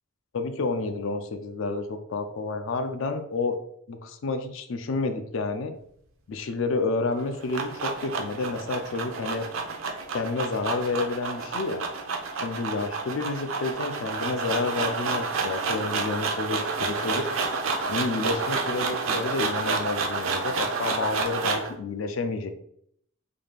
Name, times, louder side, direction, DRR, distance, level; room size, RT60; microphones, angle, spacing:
voice 1, 0.3-3.6 3.9-5.7 6.3-9.5 10.1-11.9 12.4-17.3 17.9-22.5, left 3 dB, 70° left, 7 dB, 0.4 m, -30 dB
sound 1, 7.1-21.7, right 4 dB, 70° right, 0.5 m, -30 dB
3.7 x 2.3 x 3.3 m, 0.68 s
head